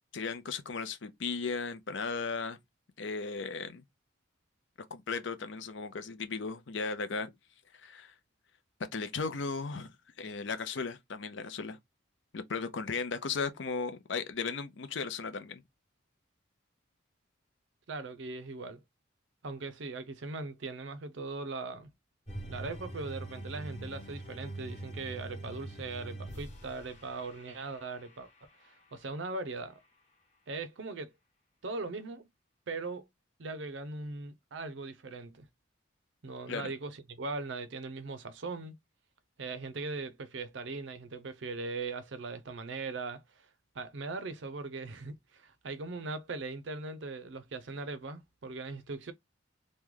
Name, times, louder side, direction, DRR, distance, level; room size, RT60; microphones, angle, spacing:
voice 1, 0.1-2.6 3.0-3.8 4.9-7.3 7.7-8.1 8.9-11.8 12.3-15.6 36.5-36.7, left 4 dB, 65° left, 0.6 m, -36 dB
voice 2, 17.9-18.8 19.4-21.9 22.5-28.3 28.6-29.8 30.5-31.1 31.6-32.3 32.7-33.1 33.4-35.5 36.2-38.8 39.4-43.5 43.7-49.1, right 3 dB, 65° right, 0.5 m, -40 dB
sound 1, 22.3-28.6, right 1 dB, 30° left, 1.1 m, -43 dB
3.1 x 2.2 x 3.6 m
head